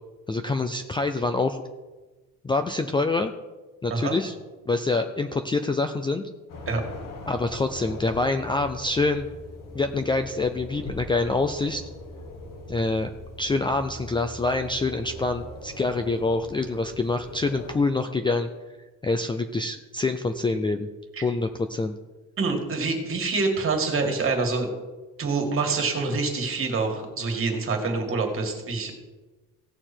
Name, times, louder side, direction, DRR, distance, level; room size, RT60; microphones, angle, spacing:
voice 1, 0.3-1.6 2.4-3.3 3.8-4.3 4.7-6.2 7.3-9.3 9.7-11.8 12.7-13.1 13.4-18.5 19.0-20.9 21.2-21.9, left 3 dB, 15° left, 7 dB, 0.4 m, -26 dB
sound 1, 6.5-17.8, left 2 dB, 70° left, 1.9 m, -41 dB
voice 2, 22.4-24.7 25.2-28.9, right 4 dB, 40° right, 3 dB, 2.2 m, -26 dB
17.0 x 6.8 x 4.4 m, 1.2 s
cardioid pair, 150°, 34 cm